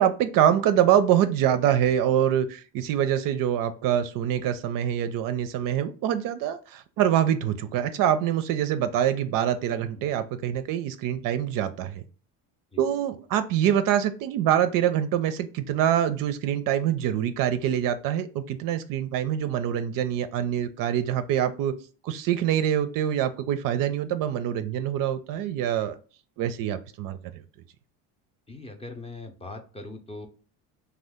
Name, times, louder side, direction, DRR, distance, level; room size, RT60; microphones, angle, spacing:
voice 1, 0.0-12.0 12.8-21.7 22.0-26.0 26.4-27.2, right 10 dB, 55° right, 10 dB, 0.4 m, -25 dB
voice 2, 28.5-30.3, left 2 dB, 15° left, 4 dB, 0.5 m, -40 dB
2.6 x 2.3 x 3.4 m, 0.37 s
supercardioid pair, 85°, 41 cm